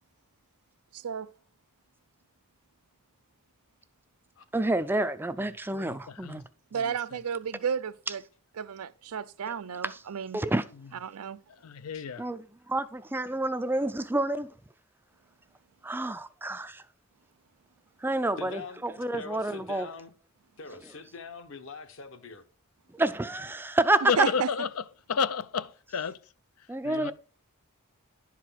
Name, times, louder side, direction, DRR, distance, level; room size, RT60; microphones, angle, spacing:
voice 1, 0.9-1.3 6.7-8.2 8.6-10.4 11.0-11.4 24.2-24.5, right 7 dB, 80° right, 0.5 m, -32 dB
voice 2, 4.5-6.4 9.8-10.0 10.3-10.6 12.2-14.5 15.8-16.8 18.0-19.9 22.9-24.1 26.7-27.1, right 2 dB, 10° right, 0.4 m, -29 dB
voice 3, 5.4-6.4 6.7-7.2 11.5-12.2 24.1-26.2 26.8-27.1, left 6 dB, 80° left, 0.5 m, -32 dB
voice 4, 18.4-20.1 20.6-22.4, left 4 dB, 60° left, 1.1 m, -43 dB
11.0 x 4.8 x 5.7 m
head